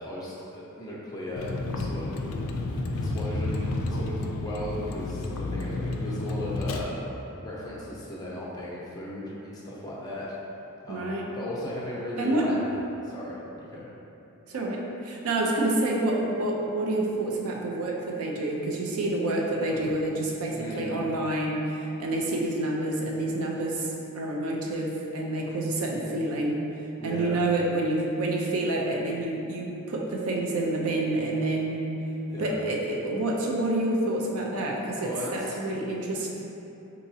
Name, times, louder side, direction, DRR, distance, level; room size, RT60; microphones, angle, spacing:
voice 1, 0.0-1.5 1.8-2.1 2.6-7.0 7.4-10.3 10.8-12.6 13.0-13.9 19.7-19.9 20.5-20.9 27.0-27.4 32.3-32.6 35.0-35.6, left 1 dB, 15° left, -6 dB, 0.6 m, -36 dB
Vehicle, 1.4-6.8, left 2 dB, 65° left, 0.3 m, -31 dB
voice 2, 10.9-11.2 12.2-12.5 14.5-26.7 27.0-32.0 32.4-36.3, right 2 dB, 80° right, -1 dB, 0.6 m, -28 dB
4.7 x 2.9 x 2.7 m, 2.9 s
head